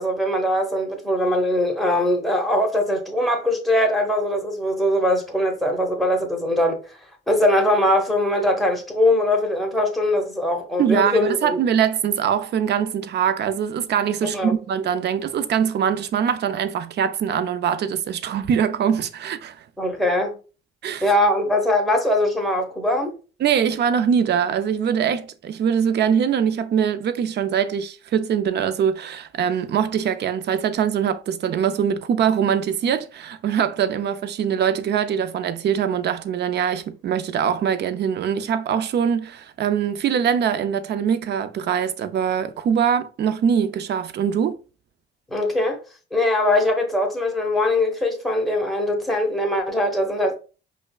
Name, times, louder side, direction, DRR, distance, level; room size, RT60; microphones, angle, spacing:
voice 1, 0.0-6.8 7.3-11.6 14.3-14.5 19.8-20.4 21.0-23.1 45.3-45.8 46.1-50.3, left 1 dB, ahead, 1.1 m, -21 dB
voice 2, 10.8-19.6 20.8-21.1 23.4-44.6, right 8 dB, 60° right, 0.5 m, -22 dB
5.3 x 2.2 x 2.3 m
cardioid pair, 90°, 20 cm